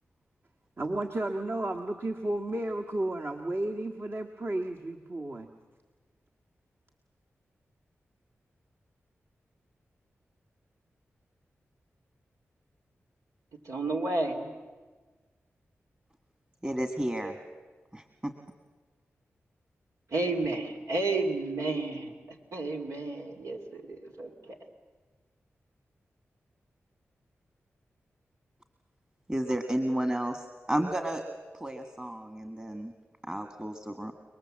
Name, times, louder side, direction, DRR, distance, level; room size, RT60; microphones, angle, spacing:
voice 1, 0.8-5.5, right 1 dB, 50° right, 1 dB, 1.7 m, -32 dB
voice 2, 13.6-14.5 20.1-22.1 22.5-24.6, right 2 dB, 90° right, 2 dB, 2.5 m, -31 dB
voice 3, 16.6-17.4 17.9-18.3 29.3-31.2 31.5-32.9 33.2-34.1, right 1 dB, 20° right, 6 dB, 1.7 m, -32 dB
29.5 x 20.0 x 7.6 m, 1.4 s
cardioid pair, 55°, 5 cm